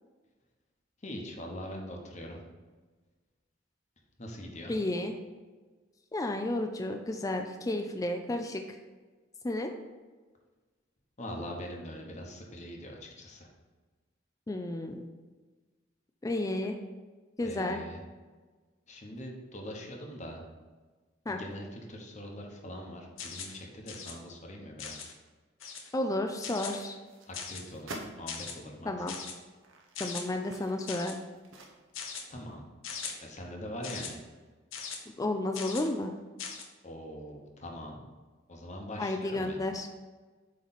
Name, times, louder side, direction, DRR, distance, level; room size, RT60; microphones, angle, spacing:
voice 1, 1.0-2.4 4.2-4.8 11.2-13.5 17.4-18.0 18.9-20.4 21.3-25.1 27.3-28.9 32.3-32.7 33.2-34.2 36.8-38.0 38.5-39.6, equal, 40° left, 1 dB, 1.0 m, -42 dB
voice 2, 4.7-5.1 6.1-8.8 9.4-9.7 14.5-15.0 16.2-16.8 17.4-17.8 21.3-21.4 25.9-27.0 28.9-29.2 30.0-31.2 35.2-36.1 39.0-39.9, left 1 dB, 15° left, 5 dB, 0.4 m, -32 dB
sound 1, 23.2-23.6 23.9-24.1 24.8-25.1 25.6-25.9 26.4-26.8 27.3-27.7 28.3-28.5 29.1-29.3 29.9-30.2 30.9-31.2 31.9-32.2 32.8-33.1 33.8-34.1 34.7-35.0 35.5-35.9 36.4-36.6, left 6 dB, 80° left, 0.9 m, -40 dB
sound 2, 26.6-28.2 28.9-29.0 29.5-32.2 32.5-32.6, right 2 dB, 75° right, 0.9 m, -48 dB
7.9 x 3.2 x 4.1 m, 1.3 s
head